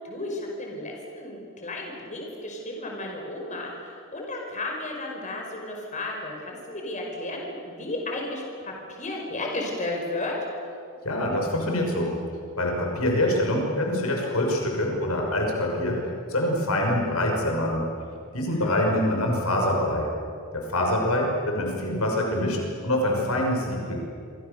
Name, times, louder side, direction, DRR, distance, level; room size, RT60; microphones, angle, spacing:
voice 1, 0.0-10.3 18.6-19.3, left 2 dB, 35° left, 0 dB, 5.2 m, -34 dB
voice 2, 11.0-12.1 12.6-16.0 16.3-17.8 18.3-20.1 20.5-22.6 22.8-24.0, left 1 dB, 90° left, 1 dB, 6.1 m, -25 dB
28.0 x 24.5 x 7.0 m, 2.4 s
head